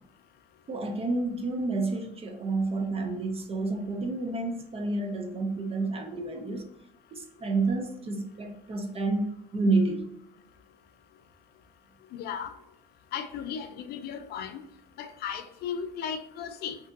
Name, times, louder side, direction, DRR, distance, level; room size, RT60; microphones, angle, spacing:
voice 1, 0.7-6.7 7.1-10.1, right 3 dB, 35° right, 4 dB, 0.7 m, -29 dB
voice 2, 12.1-12.5 13.1-14.6 15.0-16.8, left 7 dB, 70° left, 9 dB, 0.4 m, -36 dB
3.4 x 2.7 x 2.6 m, 0.79 s
cardioid pair, 110°, 17 cm